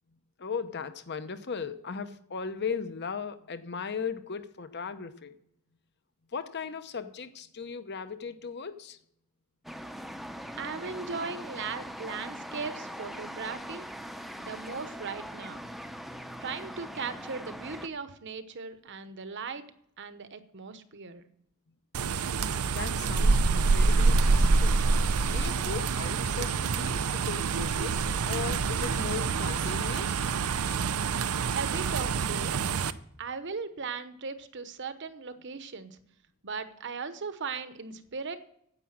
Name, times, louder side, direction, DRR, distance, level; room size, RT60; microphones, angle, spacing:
voice 1, 0.1-5.3 6.3-9.0 22.6-24.8 25.3-30.3, left 5 dB, 50° left, 11 dB, 0.9 m, -37 dB
sound 1, 9.6-17.9, equal, ahead, 0.6 m, -41 dB
voice 2, 10.6-13.9 14.4-15.7 16.4-19.6 20.0-21.3 31.5-32.5 33.2-36.0 36.4-38.4, right 5 dB, 55° right, 11 dB, 1.0 m, -38 dB
sound 2, 21.9-32.9, right 4 dB, 80° right, 0.6 m, -26 dB
sound 3, 28.0-29.6 31.0-32.6, left 3 dB, 85° left, 1.6 m, -53 dB
9.9 x 8.2 x 7.4 m, 0.72 s
head